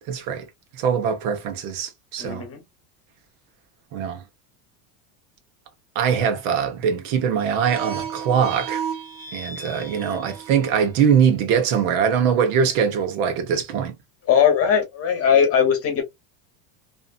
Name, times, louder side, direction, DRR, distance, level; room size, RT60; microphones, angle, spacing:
voice 1, 0.1-0.4 0.7-2.4 3.9-4.2 5.9-8.8 9.3-13.9, right 7 dB, 65° right, 1.1 m, -22 dB
voice 2, 2.2-2.6 14.3-16.0, left 7 dB, 30° left, 1.2 m, -19 dB
sound 1, 7.5-10.8, right 6 dB, 25° right, 0.4 m, -33 dB
2.8 x 2.4 x 2.4 m
supercardioid pair, 145°, 46 cm